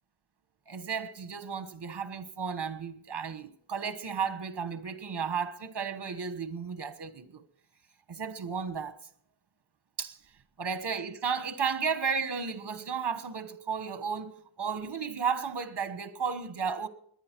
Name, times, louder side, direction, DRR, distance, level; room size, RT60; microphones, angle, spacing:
voice 1, 0.7-7.4 8.1-9.0 10.0-10.2 10.6-16.9, right 6 dB, 60° right, 1.3 m, -33 dB
21.5 x 9.8 x 4.6 m
wide cardioid pair, 80°, 46 cm